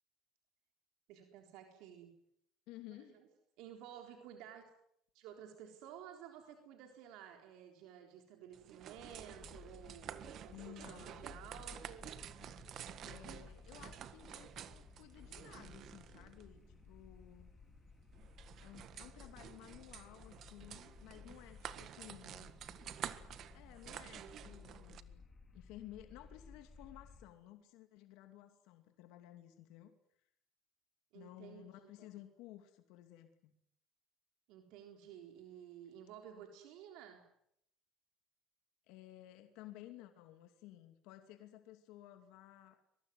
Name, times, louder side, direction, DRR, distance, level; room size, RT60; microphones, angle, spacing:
voice 1, 1.1-2.1 2.9-3.3 3.6-4.6 5.1-12.1 31.1-31.6 34.5-37.2, right 9 dB, 75° right, 4 dB, 3.9 m, -53 dB
voice 2, 2.7-3.2 10.5-11.3 13.0-16.6 16.9-17.5 18.6-22.6 23.5-25.2 25.5-29.9 31.1-33.5 38.9-42.8, left 14 dB, 80° left, 7 dB, 2.5 m, -55 dB
sound 1, 8.5-25.0, right 10 dB, 50° right, 1.6 m, -51 dB
sound 2, 9.0-27.2, left 4 dB, 25° left, 4.9 m, -58 dB
23.5 x 22.0 x 9.5 m, 0.75 s
cardioid pair, 135°, 0 cm